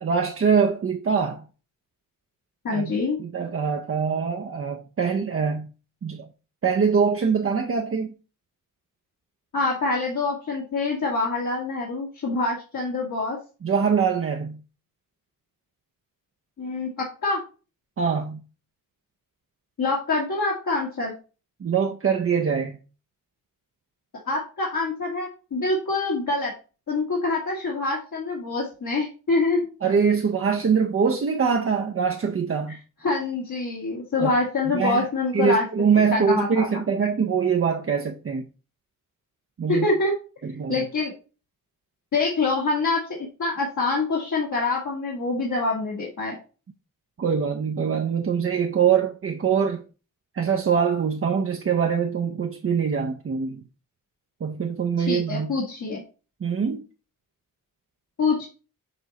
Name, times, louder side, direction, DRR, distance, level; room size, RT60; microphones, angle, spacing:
voice 1, 0.0-1.4 2.7-5.7 6.0-6.3 6.6-8.1 13.6-14.6 18.0-18.4 21.6-22.8 29.8-32.8 34.2-34.3 34.7-35.1 35.3-38.4 39.6-39.9 40.4-40.9 47.2-49.8 50.3-53.6 54.4-55.5 56.4-56.8, right 6 dB, 40° right, 0.6 m, -23 dB
voice 2, 2.6-3.2 9.5-13.4 16.6-17.4 19.8-21.1 24.3-26.5 26.9-29.7 33.0-35.7 36.1-36.7 39.7-40.1 40.7-41.1 42.1-46.4 55.0-56.0 58.2-58.5, left 3 dB, 60° left, 1.7 m, -25 dB
6.7 x 3.9 x 4.0 m
wide cardioid pair, 145°, 34 cm